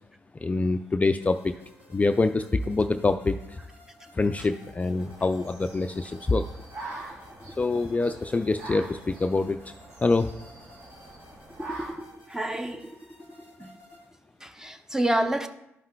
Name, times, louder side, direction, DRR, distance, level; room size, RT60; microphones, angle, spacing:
voice 1, 0.4-1.5 1.9-3.6 4.1-6.5 7.6-9.7 10.0-10.3, left 3 dB, 20° left, 0.3 m, -25 dB
sound 1, 1.2-14.1, left 1 dB, 85° right, 2.7 m, -55 dB
sound 2, 4.9-11.9, right 2 dB, 55° right, 2.2 m, -44 dB
voice 2, 11.6-13.0 13.6-13.7 14.4-15.5, right 1 dB, 10° right, 0.7 m, -29 dB
12.0 x 5.5 x 2.3 m
hypercardioid pair, 45°, 7 cm